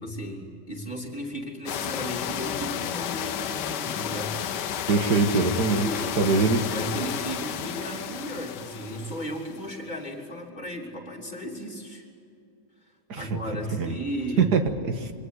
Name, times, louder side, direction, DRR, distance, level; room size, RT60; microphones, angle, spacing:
voice 1, 0.0-4.4 5.7-6.2 6.7-12.0 13.2-14.6, equal, 25° left, 0 dB, 3.4 m, -35 dB
sound 1, 1.7-9.6, left 9 dB, 85° left, 1.4 m, -32 dB
voice 2, 4.9-5.9 6.2-6.6 13.1-13.3 13.7-13.9 14.4-15.1, right 4 dB, 70° right, 6 dB, 2.1 m, -23 dB
25.0 x 18.0 x 9.6 m, 2.5 s
omnidirectional pair, 1.8 m